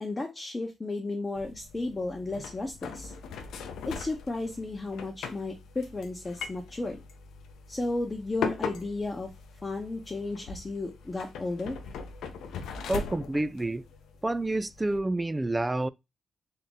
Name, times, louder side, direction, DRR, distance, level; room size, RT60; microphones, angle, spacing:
voice 1, 0.0-3.1 3.9-7.0 7.7-9.3 9.6-11.8, left 2 dB, 25° left, 0.9 m, -33 dB
sound 1, 1.4-15.0, left 5 dB, 90° left, 0.5 m, -40 dB
voice 2, 12.9-13.8 14.2-15.9, right 2 dB, 20° right, 0.3 m, -28 dB
3.6 x 2.6 x 3.9 m
cardioid pair, 70°, 0 cm